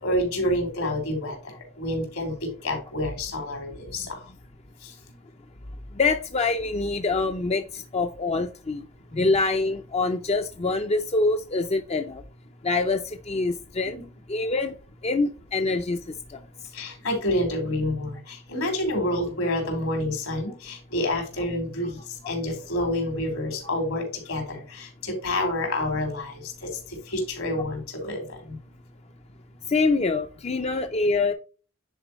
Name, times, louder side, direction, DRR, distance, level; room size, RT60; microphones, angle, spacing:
voice 1, 0.0-4.2 4.8-4.9 9.1-9.3 13.8-14.0 16.7-22.0 22.3-28.6, left 1 dB, 75° left, 3.6 m, -28 dB
voice 2, 5.9-8.8 9.2-12.2 12.6-14.0 14.3-14.7 15.0-16.4 29.7-31.3, left 3 dB, 30° left, 0.5 m, -25 dB
9.9 x 4.4 x 3.1 m
head